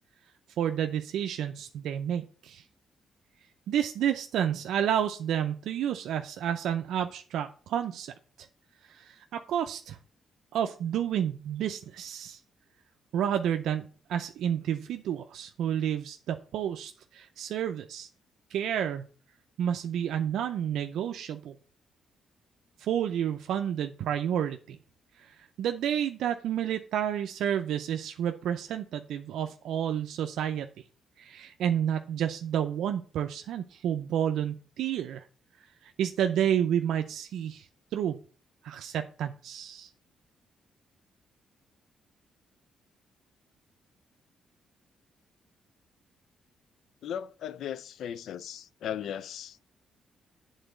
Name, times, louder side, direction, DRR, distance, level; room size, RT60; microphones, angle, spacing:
voice 1, 0.6-2.6 3.7-8.1 8.8-10.0 10.5-12.4 13.1-18.1 18.5-19.0 19.6-21.5 22.8-24.8 25.2-30.7 31.2-35.3 35.8-37.7 37.9-38.2 38.6-39.9, right 9 dB, 85° right, 0.5 m, -30 dB
voice 2, 47.0-49.6, left 9 dB, 75° left, 0.4 m, -37 dB
8.1 x 3.9 x 6.5 m
cardioid pair, 110°, 0 cm